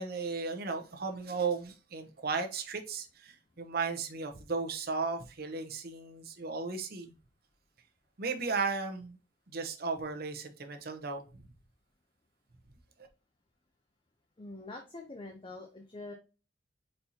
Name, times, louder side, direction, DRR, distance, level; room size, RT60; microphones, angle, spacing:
voice 1, 0.0-7.1 8.2-9.2 9.5-11.2, right 4 dB, 55° right, 0.8 m, -35 dB
voice 2, 14.4-16.1, left 2 dB, 25° left, 0.6 m, -45 dB
4.4 x 4.1 x 2.6 m
head